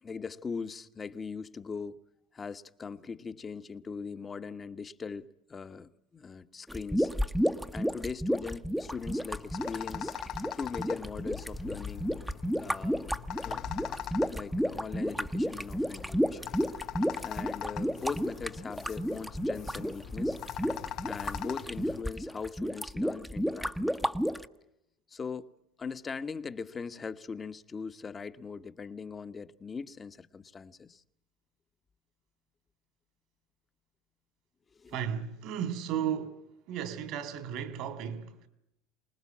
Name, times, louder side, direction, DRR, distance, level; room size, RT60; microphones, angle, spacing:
voice 1, 0.0-2.0 2.3-7.1 7.7-10.1 10.6-12.1 12.6-13.2 13.4-13.7 14.3-16.5 17.2-20.4 21.0-24.1 25.1-25.5 25.8-31.0 34.8-35.0, left 5 dB, 25° left, 1.2 m, -40 dB
sound 1, 6.7-24.5, equal, ahead, 1.1 m, -32 dB
sound 2, 8.8-22.0, left 10 dB, 55° left, 0.9 m, -42 dB
voice 2, 34.9-36.4 36.7-38.5, right 9 dB, 60° right, 3.0 m, -34 dB
25.0 x 20.0 x 7.4 m
supercardioid pair, 95°, 0 cm